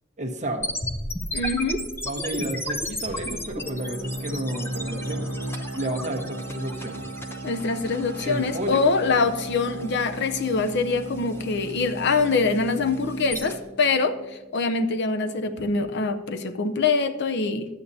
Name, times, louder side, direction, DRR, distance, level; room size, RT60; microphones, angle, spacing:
voice 1, 0.2-0.7 2.0-5.3 5.7-7.0 8.2-8.9, right 1 dB, 35° right, 1 dB, 1.2 m, -31 dB
sound 1, 0.6-13.6, left 1 dB, 10° left, 0.7 m, -35 dB
voice 2, 1.3-1.8 7.4-14.1 14.5-17.7, left 4 dB, 55° left, 9 dB, 0.6 m, -24 dB
sound 2, 3.5-14.9, right 1 dB, 70° right, 1.3 m, -36 dB
12.5 x 8.8 x 2.8 m, 1.1 s
head